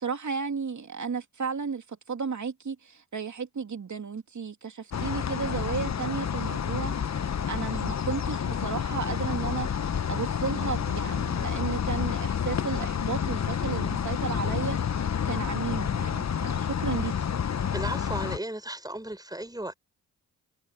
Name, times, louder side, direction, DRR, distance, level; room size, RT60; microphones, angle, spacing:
voice 1, 0.0-17.3, right 5 dB, 45° right, 2.9 m, -34 dB
sound 1, 4.9-18.4, left 8 dB, 40° left, 1.0 m, -29 dB
voice 2, 17.7-19.7, right 1 dB, 10° right, 7.2 m, -35 dB
supercardioid pair, 45°, 40 cm